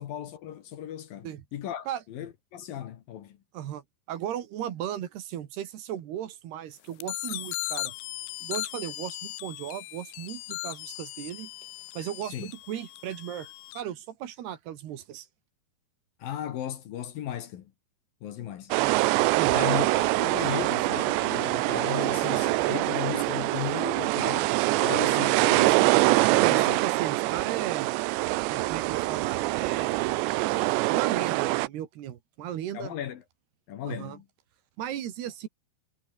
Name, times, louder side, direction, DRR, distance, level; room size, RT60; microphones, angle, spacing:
voice 1, 0.0-3.4 12.3-12.5 16.2-17.7 18.2-18.7 19.5-24.5 24.8-26.8 32.7-33.2 33.7-34.3, left 10 dB, 65° left, 2.9 m, -36 dB
voice 2, 3.5-7.9 8.4-11.5 12.0-15.3 19.4-19.8 26.3-27.9 28.5-30.4 30.9-32.9 33.9-34.2 34.8-35.5, right 11 dB, 70° right, 3.7 m, -36 dB
sound 1, 7.0-13.8, left 22 dB, 85° left, 2.9 m, -38 dB
sound 2, 18.7-31.7, right 20 dB, 90° right, 2.9 m, -24 dB
omnidirectional pair, 5.0 m